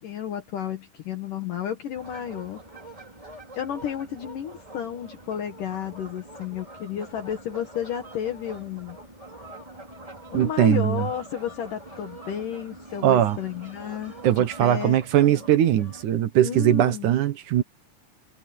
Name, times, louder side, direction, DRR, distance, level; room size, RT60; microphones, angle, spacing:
voice 1, 0.0-2.6 3.5-9.0 10.3-15.0 15.3-15.4 16.4-17.1, left 9 dB, 65° left, 3.0 m, -32 dB
sound 1, 1.9-16.0, right 1 dB, 10° right, 3.4 m, -44 dB
voice 2, 10.3-11.1 13.0-13.4 14.2-17.6, right 11 dB, 65° right, 2.3 m, -20 dB
omnidirectional pair, 4.3 m